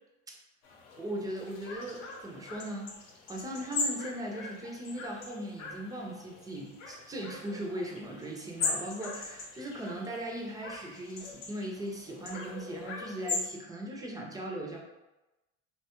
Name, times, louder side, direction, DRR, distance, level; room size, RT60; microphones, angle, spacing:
sound 1, 0.6-13.5, left 3 dB, 85° left, 0.7 m, -40 dB
voice 1, 1.0-2.9 3.3-14.8, right 1 dB, 10° right, -1 dB, 0.3 m, -38 dB
3.0 x 2.2 x 2.8 m, 1.0 s
supercardioid pair, 125°, 37 cm